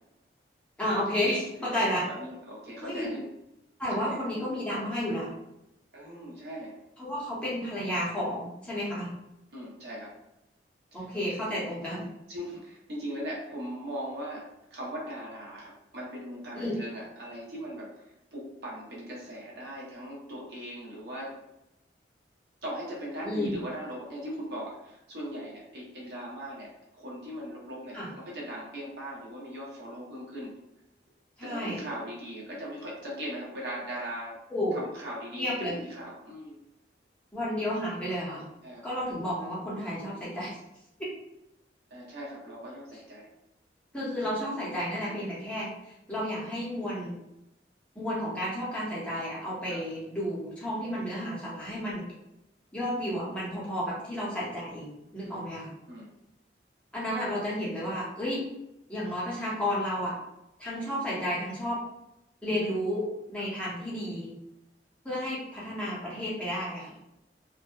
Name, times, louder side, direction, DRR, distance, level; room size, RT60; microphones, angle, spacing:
voice 1, 0.8-2.0 2.8-3.1 3.8-5.3 7.0-9.1 10.9-12.1 16.5-16.7 23.2-23.5 27.9-28.1 31.4-31.8 34.5-34.8 35.3-35.7 37.3-38.4 38.8-40.6 41.0-41.1 43.9-47.1 47.9-52.0 52.7-54.9 55.1-55.7 56.9-58.4 58.9-60.2 60.6-61.8 62.4-64.3 65.0-66.9, equal, 5° left, -8 dB, 0.7 m, -32 dB
voice 2, 1.6-3.3 3.9-4.2 5.9-6.7 9.5-10.2 10.9-11.0 12.3-21.4 22.6-30.5 31.4-34.4 34.7-36.6 38.6-38.9 41.9-43.3 49.7-49.8 55.2-55.5 55.9-56.1 63.4-63.5, equal, 70° right, -4 dB, 0.7 m, -39 dB
2.6 x 2.2 x 2.2 m, 0.88 s
head